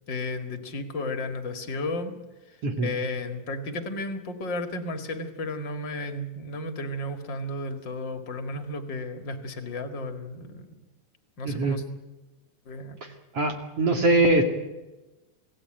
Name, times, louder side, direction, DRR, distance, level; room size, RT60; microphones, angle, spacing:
voice 1, 0.1-2.1 2.8-10.7 11.4-11.8 12.7-13.0, left 2 dB, 40° left, 6 dB, 1.8 m, -33 dB
voice 2, 11.4-11.8 13.0-14.4, right 2 dB, 40° right, 4 dB, 2.7 m, -23 dB
27.5 x 17.5 x 9.0 m, 1.1 s
omnidirectional pair, 4.9 m